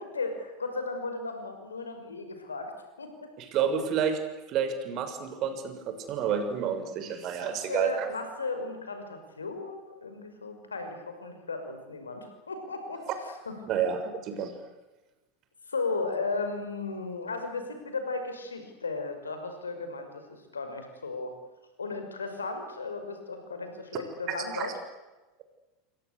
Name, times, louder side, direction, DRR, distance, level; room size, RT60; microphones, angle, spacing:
voice 1, 0.0-2.7 3.0-3.3 7.3-13.5 15.7-21.3 21.8-24.7, left 3 dB, 80° left, 7 dB, 5.9 m, -35 dB
voice 2, 3.4-4.2 4.5-8.1 13.7-14.5 24.3-24.7, right 7 dB, 45° right, 8 dB, 6.2 m, -30 dB
29.0 x 24.5 x 8.3 m, 1.1 s
figure-of-eight pair, 85°, 0 cm